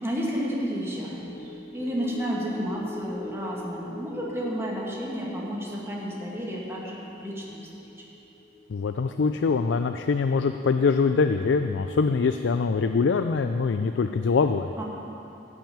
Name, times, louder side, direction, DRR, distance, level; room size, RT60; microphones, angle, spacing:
voice 1, 0.0-8.0 14.8-14.9, equal, 15° right, -4 dB, 2.1 m, -32 dB
sound 1, 1.1-11.7 12.1-12.2, left 3 dB, 45° left, 2.5 m, -45 dB
voice 2, 8.7-14.7, left 4 dB, 70° left, 8 dB, 0.4 m, -23 dB
13.0 x 6.3 x 8.8 m, 2.9 s
head